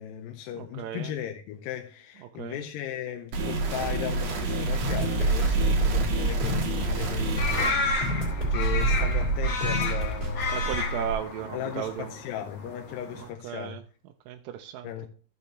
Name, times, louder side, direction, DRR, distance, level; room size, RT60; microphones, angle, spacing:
voice 1, 0.0-7.8 8.5-10.6 11.5-13.8 14.8-15.1, left 10 dB, 80° left, 2.4 m, -36 dB
voice 2, 0.6-1.1 2.4-2.6 10.5-12.1 13.2-13.8 14.3-14.9, right 10 dB, 80° right, 2.0 m, -35 dB
sound 1, 3.3-7.7, right 2 dB, 55° right, 2.3 m, -28 dB
sound 2, 4.8-11.1, right 3 dB, 25° right, 3.0 m, -27 dB
sound 3, 7.4-13.3, left 4 dB, 55° left, 2.1 m, -32 dB
14.0 x 6.8 x 3.1 m
omnidirectional pair, 4.3 m